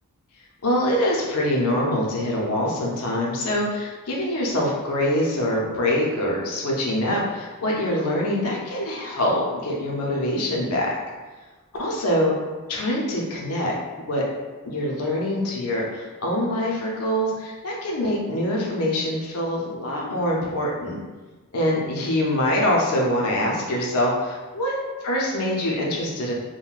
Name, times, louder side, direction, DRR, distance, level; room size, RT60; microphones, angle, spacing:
voice 1, 0.6-10.9 11.7-12.3 12.7-13.7 14.1-14.3 14.6-21.0 21.5-24.8 25.0-26.3, left 1 dB, 85° left, -3 dB, 0.6 m, -24 dB
3.7 x 2.1 x 2.4 m, 1.3 s
head